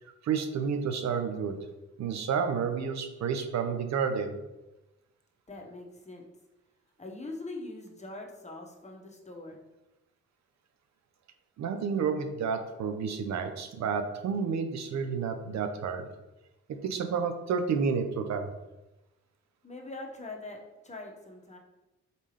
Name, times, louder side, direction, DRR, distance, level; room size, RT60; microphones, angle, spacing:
voice 1, 0.2-1.6 2.0-4.4 11.6-16.1 16.7-18.5, right 6 dB, 65° right, 7 dB, 0.6 m, -30 dB
voice 2, 5.5-6.3 7.0-9.6 19.6-21.6, left 2 dB, 20° left, 1 dB, 1.1 m, -42 dB
4.1 x 3.5 x 3.2 m, 1.0 s
supercardioid pair, 45°, 30 cm